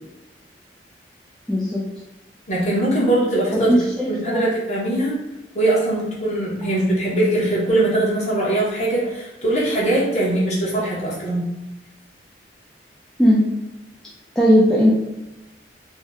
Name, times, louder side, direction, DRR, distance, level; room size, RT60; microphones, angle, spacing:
voice 1, 1.5-1.8 3.5-4.4 13.2-13.4 14.4-14.9, equal, 5° left, -7 dB, 0.3 m, -17 dB
voice 2, 2.5-3.7 4.0-5.1 5.5-11.4, right 1 dB, 40° left, -6 dB, 0.9 m, -21 dB
2.7 x 2.1 x 3.5 m, 0.97 s
head